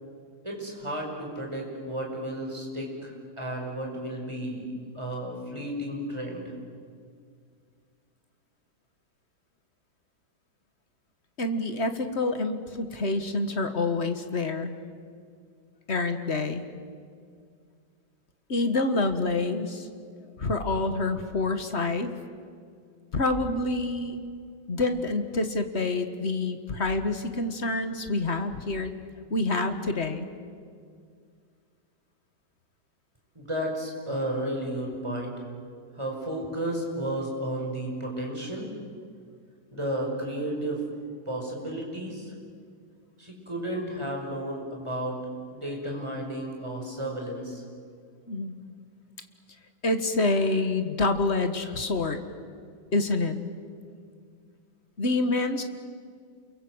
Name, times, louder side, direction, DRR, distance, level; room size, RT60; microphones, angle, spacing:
voice 1, 0.4-6.4 33.4-35.4 36.0-38.7 39.7-40.8 41.3-42.3 43.2-45.2 45.5-47.6, right 1 dB, 15° right, -1 dB, 5.4 m, -33 dB
voice 2, 11.4-14.7 15.9-16.6 18.5-19.9 20.4-22.1 23.1-24.2 24.7-28.9 29.3-30.3 48.3-48.6 49.8-52.2 52.9-53.4 55.0-55.6, left 2 dB, 35° left, 8 dB, 1.7 m, -27 dB
28.5 x 23.0 x 8.0 m, 2.1 s
omnidirectional pair, 2.1 m